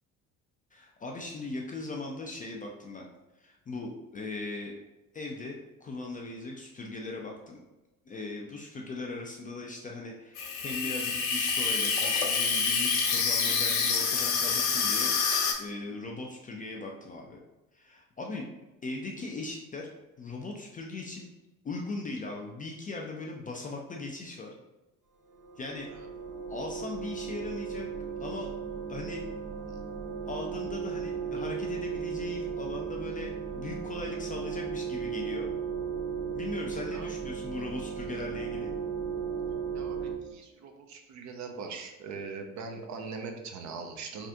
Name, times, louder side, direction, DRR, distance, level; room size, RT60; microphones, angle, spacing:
voice 1, 0.7-3.1 3.4-4.7 5.1-5.6 5.8-7.6 8.1-15.1 15.6-17.4 17.7-18.5 18.8-19.9 20.2-21.3 21.6-24.5 25.6-25.9 26.5-27.9 28.2-28.5 28.9-29.2 29.7-29.8 30.3-35.5 36.3-38.7, left 2 dB, 20° left, 0 dB, 0.4 m, -39 dB
Water tap faucet / Sink (filling or washing), 10.4-15.5, left 5 dB, 60° left, 0.7 m, -27 dB
sound 1, 25.3-40.1, right 6 dB, 75° right, 1.0 m, -36 dB
voice 2, 39.7-44.3, right 4 dB, 45° right, 4 dB, 0.5 m, -41 dB
3.4 x 2.4 x 2.7 m, 1.0 s
hypercardioid pair, 55°, 42 cm